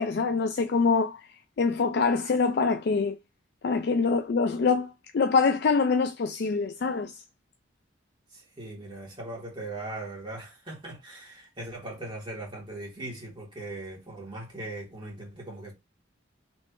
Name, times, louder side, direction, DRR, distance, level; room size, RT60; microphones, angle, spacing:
voice 1, 0.0-3.2 3.6-7.1, left 4 dB, 55° left, 0.4 m, -25 dB
voice 2, 8.3-15.7, right 2 dB, 25° right, 2.1 m, -39 dB
4.3 x 3.2 x 3.0 m
head